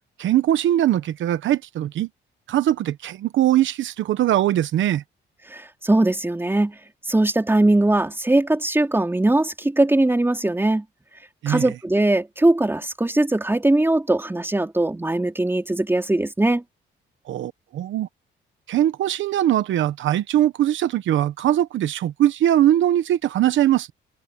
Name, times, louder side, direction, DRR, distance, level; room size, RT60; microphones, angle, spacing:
voice 1, 0.2-2.1 2.5-5.0 11.4-11.7 17.3-18.1 18.7-23.9, right 12 dB, 75° right, 1.1 m, -21 dB
voice 2, 5.5-6.8 7.1-10.8 11.5-16.6, right 2 dB, 10° right, 3.7 m, -20 dB
cardioid pair, 90°, 20 cm